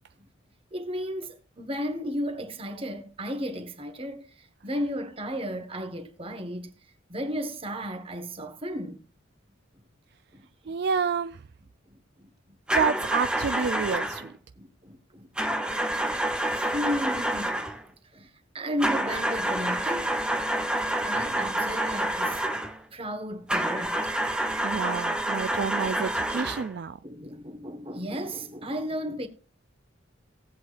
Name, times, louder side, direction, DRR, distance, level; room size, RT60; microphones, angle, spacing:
voice 1, 0.7-6.8 7.1-9.0 10.3-10.8 12.2-12.6 14.6-15.9 16.2-17.6 18.1-20.3 20.8-22.4 22.9-24.1 27.0-29.3, equal, 30° right, 1.4 m, -34 dB
voice 2, 10.7-11.4 12.7-14.3 24.6-27.0, right 6 dB, 55° right, 0.4 m, -29 dB
sound 1, 12.7-14.3 15.4-17.8 18.8-22.8 23.5-26.7, right 1 dB, 5° right, 0.8 m, -28 dB
18.5 x 8.0 x 2.5 m
head